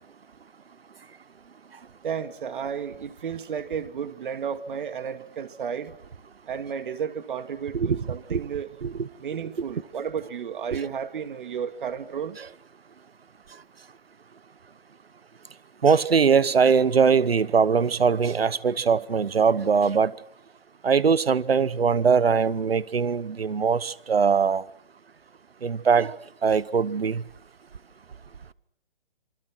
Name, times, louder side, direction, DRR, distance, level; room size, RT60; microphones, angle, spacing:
voice 1, 2.0-5.9 6.5-8.7 9.2-12.4, right 7 dB, 60° right, 2.5 m, -32 dB
voice 2, 7.7-8.0 8.3-8.4 8.8-9.1 12.4-12.5 15.8-20.1 20.8-24.6 25.6-26.1 26.4-27.2, right 6 dB, 85° right, 1.2 m, -21 dB
27.5 x 24.5 x 6.2 m
hypercardioid pair, 145°, 29 cm